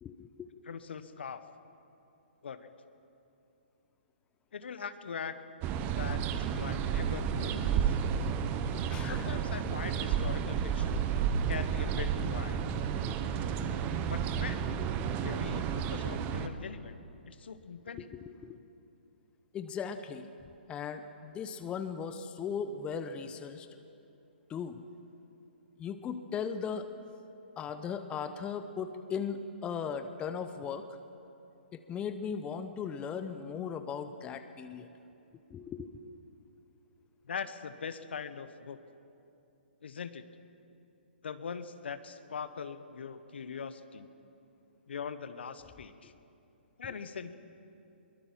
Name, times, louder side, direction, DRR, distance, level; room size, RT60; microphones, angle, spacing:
voice 1, 0.0-0.5 8.7-9.3 17.9-18.6 19.5-20.3 20.7-23.7 24.5-24.8 25.8-26.9 27.6-30.9 31.7-34.9 35.5-35.9 46.8-47.0, left 6 dB, 15° left, 9 dB, 0.9 m, -38 dB
voice 2, 0.7-1.4 2.4-2.7 4.5-5.4 5.9-7.8 9.0-11.1 11.5-12.6 14.0-14.8 15.2-17.0 17.3-18.1 37.3-38.8 39.8-40.2 41.2-44.1 44.9-46.1 46.8-47.3, left 6 dB, 70° left, 11 dB, 1.3 m, -41 dB
sound 1, 5.6-16.5, right 7 dB, 25° right, 1.1 m, -31 dB
23.0 x 21.5 x 5.8 m, 2.7 s
hypercardioid pair, 135°, 6 cm